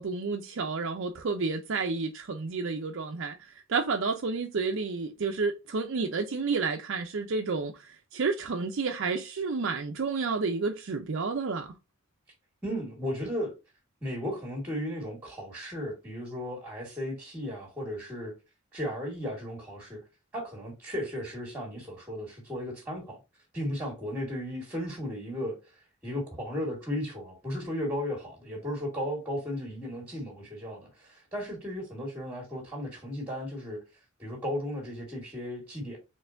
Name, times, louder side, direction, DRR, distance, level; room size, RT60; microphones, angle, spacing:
voice 1, 0.0-11.7, right 4 dB, 60° right, 0.5 m, -30 dB
voice 2, 12.6-13.5 14.0-18.3 18.7-20.0 20.3-23.2 23.5-33.8 34.2-36.0, equal, 10° right, 1.6 m, -35 dB
4.2 x 3.2 x 2.5 m
head